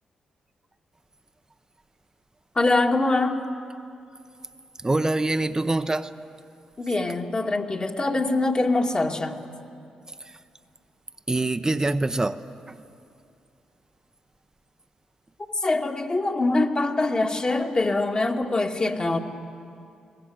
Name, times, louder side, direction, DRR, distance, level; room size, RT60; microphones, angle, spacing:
voice 1, 2.6-3.4 6.8-9.4 15.6-19.2, left 2 dB, 35° left, 2.2 m, -23 dB
voice 2, 4.8-6.1 10.3-10.4 11.3-12.4 12.7-12.8, right 2 dB, 25° right, 0.8 m, -24 dB
22.5 x 19.5 x 7.9 m
hypercardioid pair, 40°, 3 cm